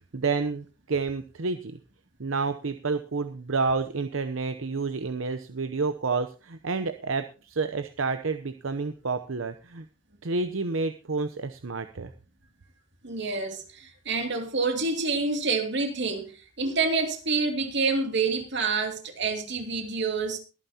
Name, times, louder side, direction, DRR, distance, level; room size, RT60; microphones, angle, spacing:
voice 1, 0.1-1.8 2.2-9.8 10.2-12.1, right 4 dB, 80° right, 0.8 m, -29 dB
voice 2, 13.0-20.4, right 4 dB, 60° right, 2.6 m, -28 dB
22.5 x 9.1 x 2.9 m
head